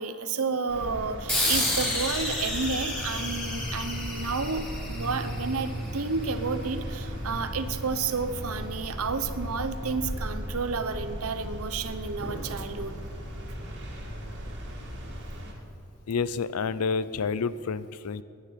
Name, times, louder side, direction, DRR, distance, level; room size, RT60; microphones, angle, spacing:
voice 1, 0.0-13.0, right 4 dB, 75° right, 11 dB, 0.9 m, -31 dB
sound 1, 0.7-15.5, equal, 55° right, 2.5 m, -36 dB
sound 2, 1.3-6.2, left 1 dB, 5° left, 4.5 m, -31 dB
voice 2, 16.1-18.2, left 5 dB, 90° left, 16 dB, 0.5 m, -29 dB
20.0 x 9.7 x 5.9 m, 2.5 s
head